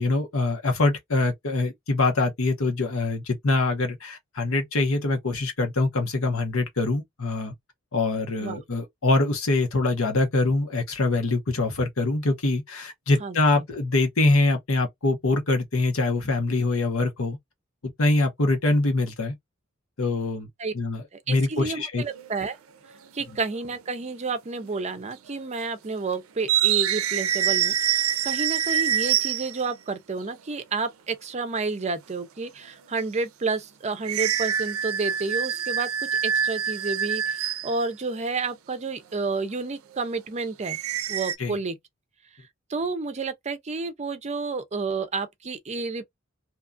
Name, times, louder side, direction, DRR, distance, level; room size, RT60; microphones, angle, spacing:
voice 1, 0.0-7.5 7.9-17.4 17.8-19.3 20.0-20.5 20.7-22.0 41.4-41.5, left 2 dB, 85° left, 1.0 m, -24 dB
voice 2, 13.2-13.6 20.6-20.7 21.1-22.6 23.1-35.9 36.2-40.8 41.1-41.8 42.7-46.0, right 4 dB, 35° right, 0.5 m, -30 dB
sound 1, 22.1-22.3 23.5-23.6 24.6-25.0 25.3-25.4 26.4-29.7 34.0-37.8 40.6-41.4, right 9 dB, 85° right, 0.5 m, -25 dB
2.8 x 2.4 x 2.5 m
head